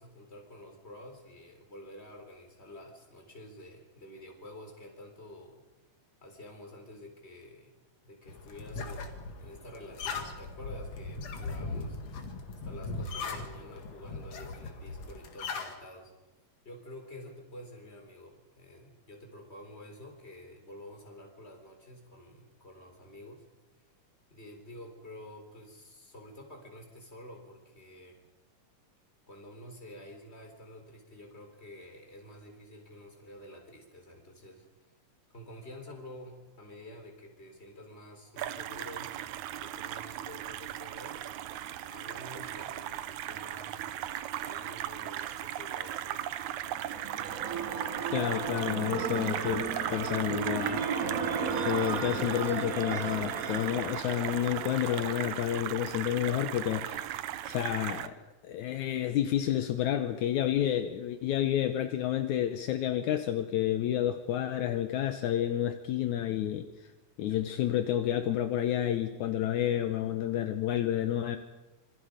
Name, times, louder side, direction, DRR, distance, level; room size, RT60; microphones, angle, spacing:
voice 1, 0.0-5.6 6.2-7.8 8.0-12.3 12.6-16.1 16.6-23.5 24.3-28.2 29.3-34.9 35.3-39.2 39.6-43.9 44.4-46.3, left 1 dB, 20° left, 3 dB, 4.0 m, -49 dB
sound 1, 8.3-15.7, left 3 dB, 55° left, 3.0 m, -39 dB
sound 2, 38.4-58.1, right 12 dB, 75° right, 2.1 m, -37 dB
sound 3, 46.8-55.6, right 5 dB, 50° right, 1.0 m, -35 dB
voice 2, 48.1-50.8 51.7-57.1 57.5-58.1 58.4-66.9 67.2-71.4, left 11 dB, 75° left, 7 dB, 2.2 m, -30 dB
26.5 x 24.5 x 5.1 m, 1.1 s
omnidirectional pair, 3.6 m